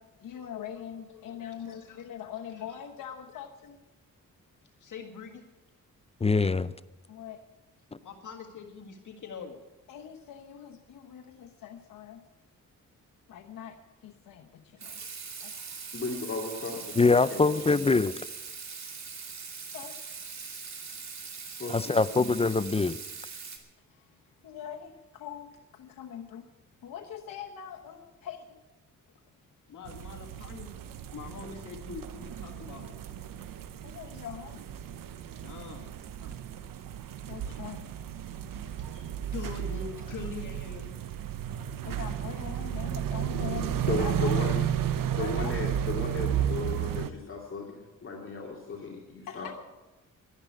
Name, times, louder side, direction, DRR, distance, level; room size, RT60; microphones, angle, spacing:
voice 1, 0.0-3.8 7.1-7.4 9.9-12.2 13.3-15.0 15.4-15.7 19.7-20.0 23.9-24.1 24.4-26.5 26.8-28.6 33.8-34.7 36.2-36.4 37.3-37.8 38.9-39.1 41.8-44.6 45.2-45.5 49.3-49.5, left 9 dB, 90° left, 1 dB, 1.0 m, -43 dB
voice 2, 1.1-2.0 2.5-2.6 4.8-5.4 8.0-9.6 16.7-16.8 29.7-30.7 31.1-33.0 35.3-35.9 38.8-39.0 39.3-40.9, left 5 dB, 65° left, 1 dB, 1.8 m, -43 dB
voice 3, 6.2-6.7 17.0-18.1 21.7-23.0, left 3 dB, 20° left, 16 dB, 0.5 m, -23 dB
Water tap faucet / Sink (filling or washing), 14.8-23.6, right 5 dB, 55° right, 2.4 m, -41 dB
voice 4, 15.9-16.9 17.3-17.9 21.6-22.2 43.8-44.6 45.1-49.5, left 3 dB, 40° left, -2 dB, 2.4 m, -35 dB
sound 1, 29.9-47.1, right 10 dB, 85° right, 0.9 m, -33 dB
12.0 x 11.0 x 8.1 m, 1.1 s
cardioid pair, 90°, 32 cm